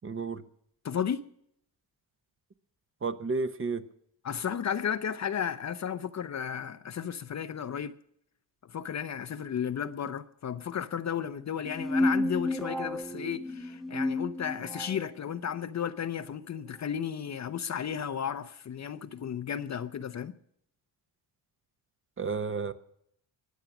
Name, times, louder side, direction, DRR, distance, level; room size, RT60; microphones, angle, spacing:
voice 1, 0.0-0.4 3.0-3.8 22.2-22.7, right 4 dB, 30° right, 1.0 m, -31 dB
voice 2, 0.8-1.2 4.2-8.0 8.7-20.3, left 8 dB, 40° left, 0.7 m, -34 dB
sound 1, 11.7-15.1, left 1 dB, ahead, 0.9 m, -31 dB
21.5 x 8.4 x 6.0 m
cardioid pair, 110°, 45 cm